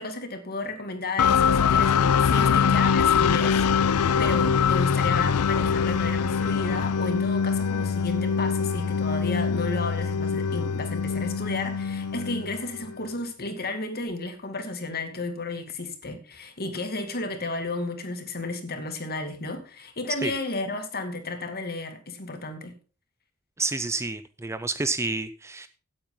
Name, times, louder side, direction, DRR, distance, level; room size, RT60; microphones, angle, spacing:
voice 1, 0.0-22.7, left 2 dB, 45° left, 6 dB, 2.4 m, -33 dB
sound 1, 1.2-13.0, left 6 dB, 90° left, 0.5 m, -23 dB
voice 2, 23.6-25.7, right 3 dB, 10° right, 13 dB, 0.5 m, -29 dB
16.0 x 8.8 x 3.9 m, 0.35 s
head